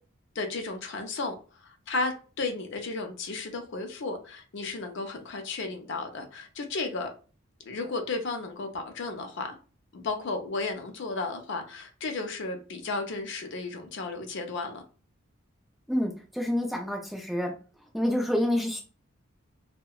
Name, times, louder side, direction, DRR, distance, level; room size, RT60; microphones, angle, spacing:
voice 1, 0.4-7.1 7.7-9.6 9.9-14.8, left 3 dB, 60° left, 5 dB, 0.5 m, -34 dB
voice 2, 15.9-17.5 17.9-18.8, left 1 dB, ahead, 1 dB, 0.4 m, -28 dB
2.7 x 2.1 x 2.2 m, 0.37 s
head